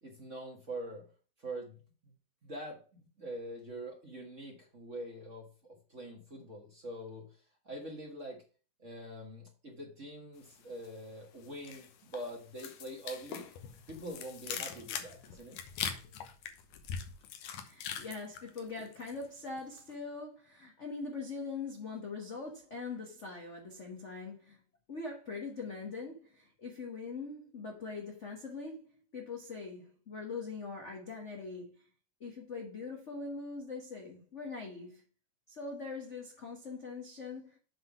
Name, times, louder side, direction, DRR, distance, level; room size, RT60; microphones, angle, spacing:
voice 1, 0.0-1.0 1.4-1.8 2.4-8.4 8.8-13.5 13.9-15.6, right 1 dB, 35° right, 1.3 m, -44 dB
sound 1, 10.4-11.1 11.4-19.3 19.6-19.9, left 8 dB, 85° left, 2.4 m, -42 dB
voice 2, 17.6-24.6 24.9-31.8 32.2-35.0 35.5-37.6, left 4 dB, 65° left, 0.7 m, -42 dB
7.7 x 3.7 x 5.9 m
omnidirectional pair, 3.3 m